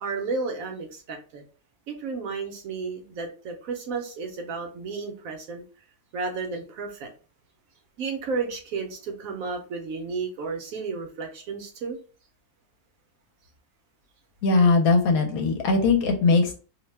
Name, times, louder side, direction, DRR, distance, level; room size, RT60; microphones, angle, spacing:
voice 1, 0.0-1.4 1.9-5.6 6.1-7.1 8.0-12.0, right 4 dB, 70° right, 4 dB, 1.0 m, -32 dB
voice 2, 14.4-16.5, left 3 dB, 70° left, 3 dB, 1.0 m, -20 dB
2.7 x 2.1 x 3.1 m, 0.37 s
omnidirectional pair, 1.6 m